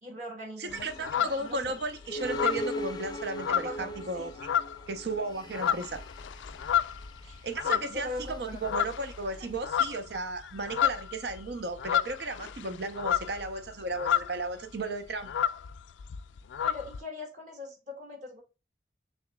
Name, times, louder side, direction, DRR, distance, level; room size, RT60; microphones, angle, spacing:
voice 1, 0.0-0.9 1.1-1.8 3.5-4.3 5.7-5.8 7.2-8.6 9.3-9.5 16.6-18.4, left 2 dB, 40° right, 1.9 m, -41 dB
voice 2, 0.6-4.3 4.9-6.0 7.4-15.3, right 2 dB, 65° right, 0.7 m, -35 dB
sound 1, 0.7-1.8 2.2-4.1 4.4-4.9 5.3-8.3 8.6-9.2 9.4-14.5 14.8-14.9 15.1-17.0, left 9 dB, 90° left, 0.3 m, -30 dB
sound 2, 0.7-13.5, equal, 25° left, 0.4 m, -42 dB
6.3 x 3.1 x 2.3 m
head